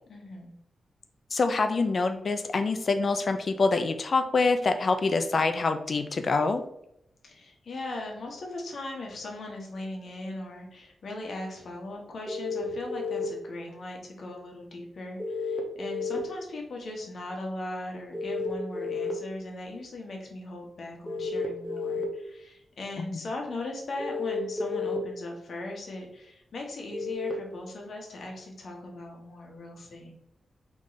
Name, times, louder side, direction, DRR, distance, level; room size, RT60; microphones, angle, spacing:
voice 1, 0.1-0.5 7.2-30.1, left 2 dB, 60° left, 0 dB, 1.2 m, -39 dB
voice 2, 1.3-6.6, left 3 dB, 45° left, 7 dB, 0.4 m, -25 dB
sound 1, 12.3-13.2 15.2-16.2 18.1-19.1 21.1-22.0 24.0-25.0 26.9-27.3, left 5 dB, 5° left, 0.8 m, -31 dB
3.6 x 3.1 x 4.0 m, 0.75 s
wide cardioid pair, 125°, 0 cm